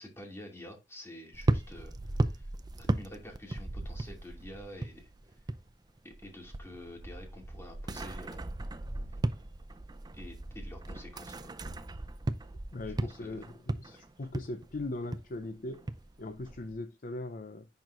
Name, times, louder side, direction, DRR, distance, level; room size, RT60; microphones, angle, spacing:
voice 1, 0.0-2.5 2.8-5.1 6.0-8.5 10.1-11.5 13.0-13.4 13.9-14.0, left 1 dB, 15° left, 2.5 m, -48 dB
sound 1, 1.3-5.7 6.0-16.7, right 2 dB, 25° right, 0.5 m, -36 dB
voice 2, 12.7-13.4 13.8-15.9 16.2-17.7, left 2 dB, 50° left, 0.6 m, -39 dB
10.5 x 4.6 x 2.5 m
head